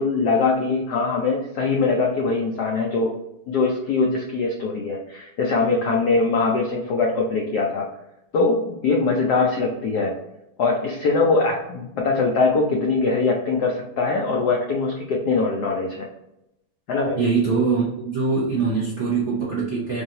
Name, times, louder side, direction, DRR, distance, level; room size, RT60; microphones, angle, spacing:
voice 1, 0.0-3.1 3.5-7.9 8.3-10.1 10.6-16.1 16.9-17.2, left 3 dB, 80° left, 0 dB, 0.9 m, -22 dB
voice 2, 17.2-20.0, right 4 dB, 70° right, -6 dB, 0.6 m, -23 dB
4.7 x 2.6 x 2.8 m, 0.87 s
omnidirectional pair, 2.4 m